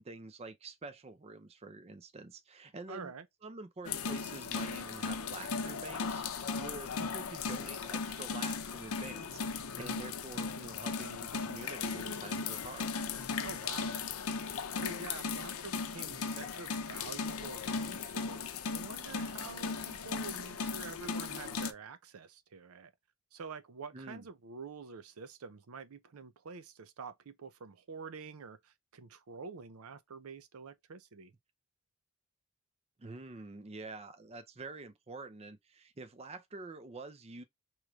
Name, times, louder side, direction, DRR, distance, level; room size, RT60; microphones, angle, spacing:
voice 1, 0.0-3.1 3.4-12.9 23.9-24.3 33.0-37.4, right 3 dB, 30° right, 0.5 m, -47 dB
voice 2, 2.9-3.3 13.4-14.0 14.7-22.9 23.3-31.3, right 5 dB, 75° right, 0.6 m, -47 dB
sound 1, 3.8-21.7, left 5 dB, 75° left, 0.6 m, -37 dB
4.6 x 3.0 x 2.3 m
head